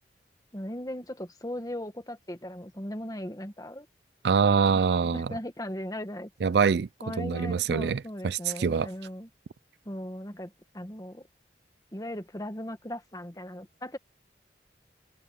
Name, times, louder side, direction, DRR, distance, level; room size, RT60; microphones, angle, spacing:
voice 1, 0.5-3.9 5.0-6.3 7.0-9.3 9.8-11.3 11.9-14.0, left 1 dB, 20° left, 1.4 m, -38 dB
voice 2, 4.2-5.3 6.4-6.9 7.2-8.9, right 6 dB, 65° right, 0.4 m, -24 dB
head